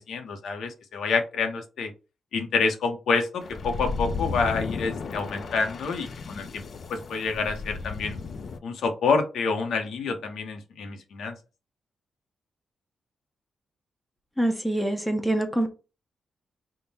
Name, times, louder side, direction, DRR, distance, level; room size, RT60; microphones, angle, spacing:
voice 1, 0.1-1.9 2.3-6.6 6.9-8.2 8.6-11.3, left 4 dB, 85° left, 0.8 m, -27 dB
sound 1, 3.4-8.6, left 4 dB, 50° left, 0.4 m, -34 dB
voice 2, 14.4-15.7, right 1 dB, ahead, 0.6 m, -25 dB
3.6 x 2.1 x 4.1 m
wide cardioid pair, 125°, 0 cm